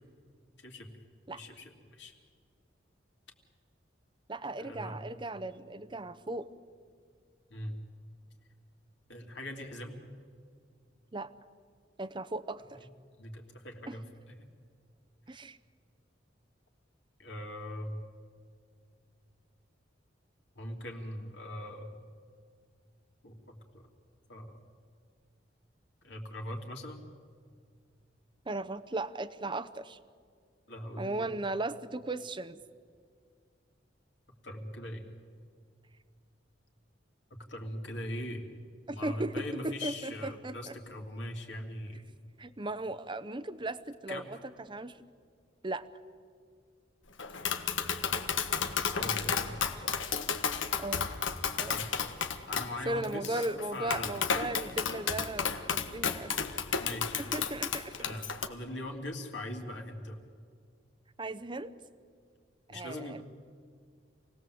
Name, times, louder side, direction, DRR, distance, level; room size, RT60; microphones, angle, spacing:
voice 1, 1.3-2.1 4.6-5.1 7.5-7.7 9.1-10.0 13.2-14.3 15.3-15.4 17.2-18.0 20.5-21.9 23.2-23.9 24.3-24.6 26.0-27.0 30.7-31.3 34.4-35.0 37.3-38.5 38.9-42.0 44.1-44.2 48.9-49.6 51.7-51.8 52.5-53.5 53.7-54.2 56.8-57.5 58.0-60.2 62.7-63.2, left 1 dB, 65° left, 2 dB, 2.9 m, -41 dB
voice 2, 4.3-6.5 11.1-11.3 12.0-12.9 13.9-14.0 15.3-15.6 28.5-30.0 31.0-32.6 38.9-40.8 42.4-45.0 45.6-45.9 50.8-51.1 51.6-51.8 52.8-56.3 56.8-56.9 57.2-58.0 61.2-61.7 62.7-63.2, right 2 dB, 25° right, 14 dB, 0.8 m, -37 dB
Tap, 47.2-58.5, left 6 dB, 85° left, 1.4 m, -33 dB
28.0 x 18.5 x 7.8 m, 2.2 s
head